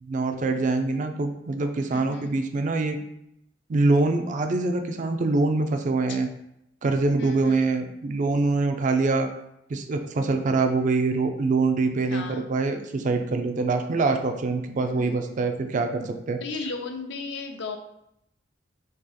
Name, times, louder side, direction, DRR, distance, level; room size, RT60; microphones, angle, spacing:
voice 1, 0.0-3.0 3.7-6.3 6.8-9.3 9.7-16.4, right 3 dB, 40° right, 6 dB, 0.3 m, -24 dB
voice 2, 1.9-2.3 6.1-6.2 7.2-7.6 12.1-12.4 14.8-15.1 16.4-17.8, left 4 dB, 65° left, 5 dB, 0.5 m, -35 dB
2.8 x 2.7 x 3.8 m, 0.81 s
head